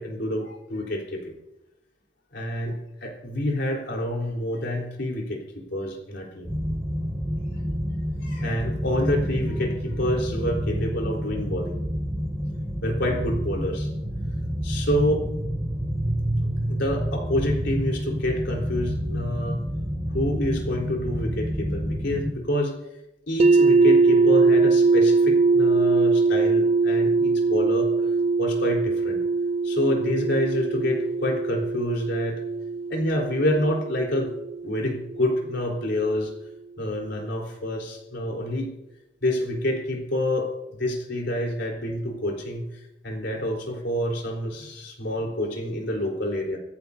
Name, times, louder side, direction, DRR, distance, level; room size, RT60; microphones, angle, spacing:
voice 1, 0.0-1.3 2.3-6.5 8.2-11.8 12.8-13.9 14.6-15.3 16.4-19.6 20.1-22.8 23.3-28.1 28.4-29.2 29.6-32.4 32.9-34.3 34.6-36.3 36.8-38.7 39.2-40.5 40.8-42.7 43.0-46.6, left 1 dB, 65° left, 0 dB, 4.2 m, -27 dB
sound 1, 6.4-22.3, equal, ahead, 5.9 m, -29 dB
sound 2, 23.4-35.3, right 4 dB, 35° right, 0.6 m, -21 dB
26.5 x 14.0 x 2.8 m, 0.94 s
head